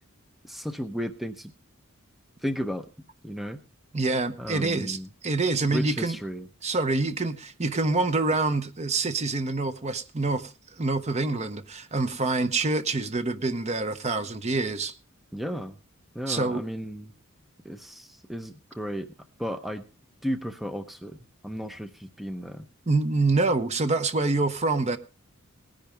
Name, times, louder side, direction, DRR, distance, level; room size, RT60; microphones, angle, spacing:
voice 1, 0.4-1.5 2.4-2.9 3.2-3.6 4.4-5.1 5.7-6.5 15.3-15.8 16.1-17.1 17.6-19.1 19.4-19.9 20.2-21.2 21.4-22.7, equal, ahead, 0.7 m, -34 dB
voice 2, 3.9-5.0 5.2-6.2 6.6-14.9 16.3-16.6 22.9-25.0, right 3 dB, 30° right, 0.8 m, -26 dB
18.5 x 10.5 x 3.3 m
head